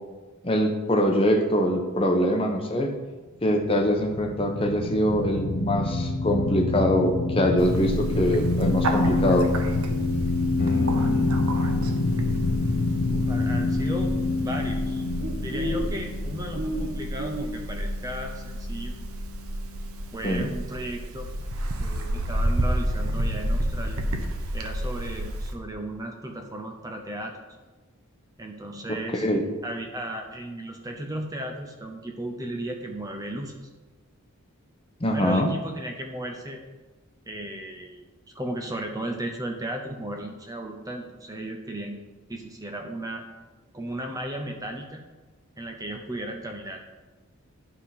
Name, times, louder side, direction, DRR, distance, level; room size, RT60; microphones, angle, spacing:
voice 1, 0.4-2.9 3.4-9.5 20.2-20.5 28.9-29.4 35.0-35.5, equal, 25° left, 2 dB, 1.0 m, -23 dB
sound 1, 3.6-17.2, left 2 dB, 85° left, 0.8 m, -27 dB
Bird, 7.6-25.5, right 1 dB, 75° right, 0.9 m, -31 dB
voice 2, 10.5-11.6 13.1-14.1 14.4-15.0 15.3-18.9 20.1-21.3 21.8-24.0 24.5-27.4 28.4-29.3 29.6-33.7 35.1-36.6 37.2-38.1 38.3-41.9 42.3-43.2 43.7-45.0 45.6-46.8, right 1 dB, 15° right, 3 dB, 0.7 m, -35 dB
sound 2, 10.6-20.3, left 6 dB, 50° left, 0.5 m, -37 dB
11.0 x 3.8 x 5.8 m, 1.3 s
head